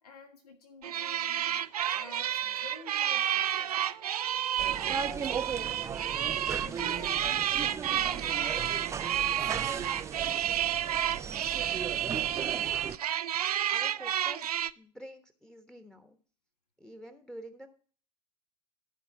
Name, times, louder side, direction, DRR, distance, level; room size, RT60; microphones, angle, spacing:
voice 1, 0.0-1.6 1.9-3.8 4.5-10.0, left 3 dB, 70° left, 3 dB, 1.5 m, -49 dB
sound 1, 0.8-14.7, right 10 dB, 70° right, 0.5 m, -31 dB
sound 2, 4.6-13.0, right 7 dB, 15° right, 0.4 m, -37 dB
voice 2, 12.4-12.8 13.7-16.2 16.8-17.7, right 1 dB, 5° left, 7 dB, 1.2 m, -48 dB
13.5 x 4.9 x 5.8 m, 0.41 s
figure-of-eight pair, 85°, 20 cm